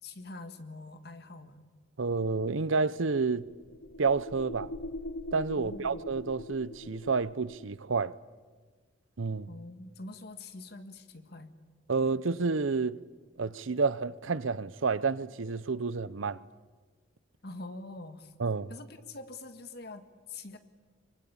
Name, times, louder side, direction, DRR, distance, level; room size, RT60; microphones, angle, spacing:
voice 1, 0.0-1.7 5.5-6.0 9.5-11.5 17.4-18.3 18.7-20.6, left 2 dB, 55° left, 1.7 m, -45 dB
voice 2, 2.0-3.5 4.0-4.7 5.3-8.1 9.2-9.5 11.9-13.0 13.4-16.4 18.4-18.7, right 4 dB, 85° right, 0.7 m, -29 dB
sound 1, 2.9-7.7, left 1 dB, 70° left, 0.9 m, -43 dB
24.0 x 24.0 x 8.7 m
head